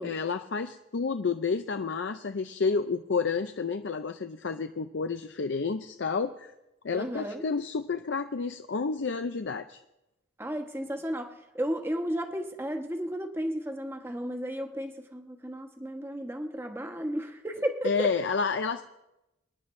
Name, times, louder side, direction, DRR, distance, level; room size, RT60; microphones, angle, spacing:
voice 1, 0.0-6.5 6.8-9.8 17.8-18.8, left 5 dB, 65° left, 9 dB, 0.5 m, -30 dB
voice 2, 6.9-7.5 10.4-18.1, equal, 10° right, 4 dB, 1.1 m, -33 dB
25.0 x 10.5 x 3.2 m, 0.96 s
head